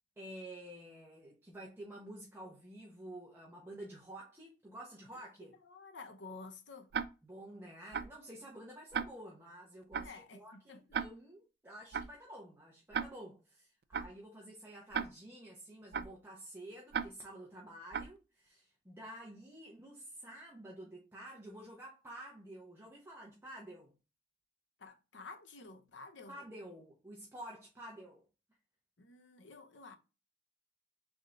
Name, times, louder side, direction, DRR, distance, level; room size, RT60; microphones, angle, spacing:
voice 1, 0.2-5.5 7.2-23.9 26.3-28.2, right 1 dB, 15° right, 0.9 m, -50 dB
voice 2, 5.6-6.9 10.0-10.8 24.8-26.4 29.0-29.9, left 3 dB, 85° left, 0.8 m, -51 dB
Tick-tock, 6.9-7.0 7.9-8.1 8.9-9.0 9.9-10.1 10.9-11.0 11.9-12.1 12.9-13.0 13.9-14.1 14.9-15.0 15.9-16.1 16.9-17.0 17.9-18.1, right 7 dB, 55° right, 0.3 m, -34 dB
3.7 x 3.5 x 3.9 m
head